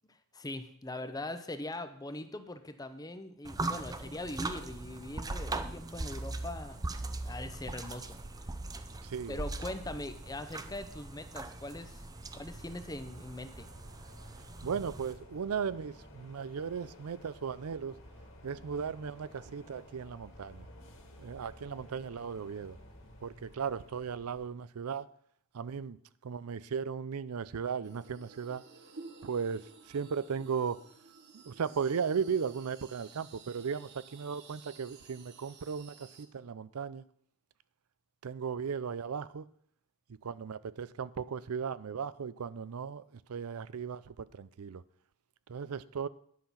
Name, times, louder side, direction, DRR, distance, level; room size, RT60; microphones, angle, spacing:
voice 1, 0.1-6.9 7.2-8.2 9.3-12.0 12.3-13.7, left 2 dB, 15° left, 0.8 m, -41 dB
sound 1, 3.4-15.1, right 2 dB, 15° right, 0.5 m, -40 dB
sound 2, 5.2-24.5, left 1 dB, 60° left, 2.1 m, -55 dB
voice 2, 9.0-9.4 14.6-17.9 18.4-20.7 21.2-22.8 23.2-25.1 25.5-26.0 26.2-28.6 29.2-30.8 31.3-37.0 38.2-39.5 40.2-44.8 45.5-46.1, right 6 dB, 85° right, 0.5 m, -36 dB
sound 3, 27.8-36.3, right 4 dB, 55° right, 1.1 m, -54 dB
10.5 x 5.7 x 7.0 m
head